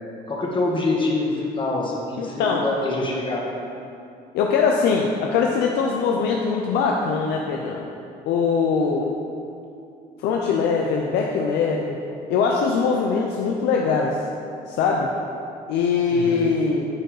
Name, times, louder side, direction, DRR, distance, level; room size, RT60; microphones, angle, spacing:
voice 1, 0.3-3.4 16.1-16.5, left 2 dB, 30° left, -2 dB, 1.7 m, -25 dB
voice 2, 2.2-2.7 4.3-7.9 8.3-9.1 10.2-12.0 12.3-14.2 14.7-15.1 15.7-16.9, left 5 dB, 80° left, 0 dB, 0.7 m, -22 dB
9.9 x 4.7 x 4.9 m, 2.6 s
cardioid pair, 110°, 17 cm